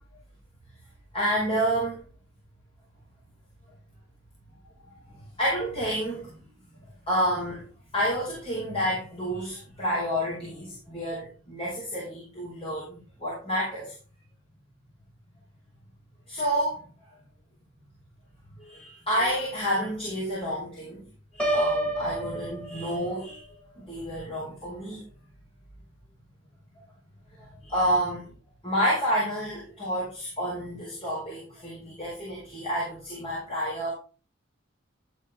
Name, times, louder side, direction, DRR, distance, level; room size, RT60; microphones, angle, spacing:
voice 1, 1.1-2.0 5.1-6.4 7.1-7.6 7.9-13.9 16.3-16.8 18.6-21.0 21.3-23.4 23.8-25.0 27.4-28.3 28.6-33.9, equal, 30° left, -7 dB, 5.4 m, -29 dB
Piano, 21.4-23.3, right 1 dB, 5° left, 2.2 m, -28 dB
13.5 x 7.2 x 3.5 m, 0.34 s
head